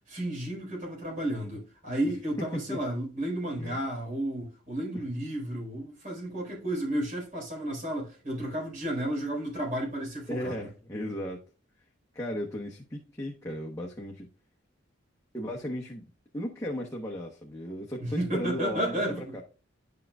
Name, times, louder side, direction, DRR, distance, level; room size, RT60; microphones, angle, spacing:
voice 1, 0.0-10.7 18.0-19.3, right 1 dB, 45° right, 4.4 m, -32 dB
voice 2, 10.3-11.4 12.1-14.3 15.3-16.1 16.3-19.4, equal, 15° left, 1.1 m, -35 dB
11.5 x 5.8 x 2.4 m
head